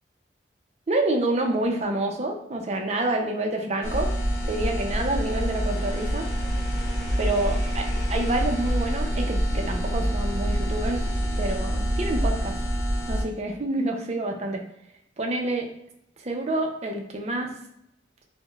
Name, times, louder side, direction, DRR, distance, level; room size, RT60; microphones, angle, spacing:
voice 1, 0.9-4.1 4.5-6.3 7.2-7.8 8.1-11.0 11.4-12.5 13.1-14.6 15.2-15.7 16.2-17.5, right 2 dB, 35° right, 2 dB, 0.5 m, -27 dB
sound 1, 3.8-13.2, equal, 60° left, 0.9 m, -26 dB
4.7 x 2.1 x 2.3 m, 0.77 s
head